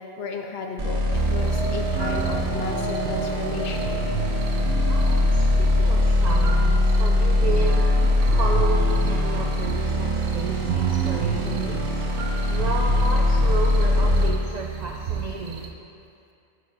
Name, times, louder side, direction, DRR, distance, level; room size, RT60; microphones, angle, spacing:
voice 1, 0.0-4.0, left 4 dB, 65° left, 3 dB, 0.7 m, -34 dB
sound 1, 0.8-14.3, left 2 dB, 50° right, 1.1 m, -22 dB
sound 2, 1.1-8.7, equal, ahead, 0.7 m, -36 dB
sound 3, 1.1-15.7, right 7 dB, 65° right, 0.7 m, -31 dB
voice 2, 4.9-7.8 8.4-12.1 12.5-15.7, right 4 dB, 90° right, 0 dB, 0.3 m, -32 dB
6.7 x 5.3 x 3.9 m, 2.5 s
omnidirectional pair, 1.3 m